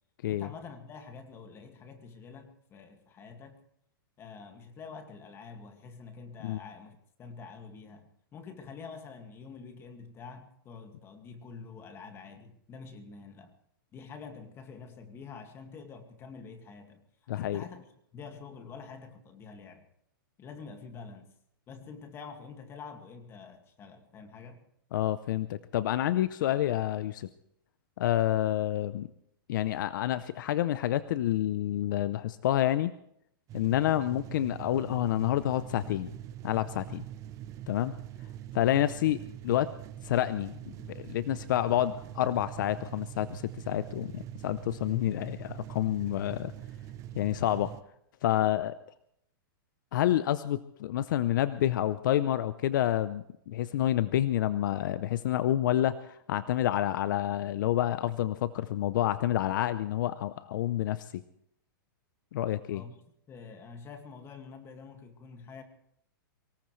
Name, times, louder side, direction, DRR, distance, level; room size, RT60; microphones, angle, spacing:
voice 1, 0.3-3.6 4.2-13.5 13.9-17.0 17.3-19.9 20.4-21.3 21.7-24.6 62.7-63.0 63.3-65.6, left 5 dB, 20° left, 6 dB, 2.1 m, -47 dB
voice 2, 17.3-17.6 24.9-27.3 28.0-29.1 29.5-32.9 33.5-36.1 36.4-37.0 37.7-37.9 38.5-39.7 40.0-46.5 47.1-47.7 48.2-48.7 49.9-61.2 62.3-62.8, left 12 dB, 60° left, 14 dB, 0.7 m, -28 dB
sound 1, 33.5-47.8, right 12 dB, 25° right, 0.8 m, -44 dB
24.0 x 18.0 x 3.3 m, 0.73 s
hypercardioid pair, 150°, 12 cm